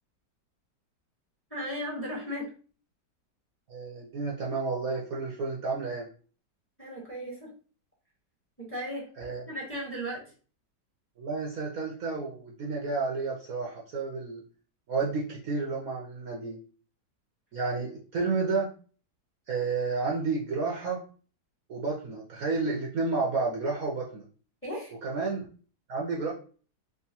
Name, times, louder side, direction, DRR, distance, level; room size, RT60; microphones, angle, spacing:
voice 1, 1.5-2.5 6.8-7.5 8.6-9.1 9.5-10.2 24.6-24.9, equal, 5° left, -4 dB, 1.5 m, -35 dB
voice 2, 3.7-6.1 9.2-9.4 11.2-14.4 14.9-16.6 17.5-18.7 19.5-21.0 21.7-24.2 25.0-25.5 25.9-26.3, right 4 dB, 60° right, -2 dB, 1.2 m, -31 dB
3.6 x 3.5 x 2.8 m, 0.39 s
omnidirectional pair, 1.9 m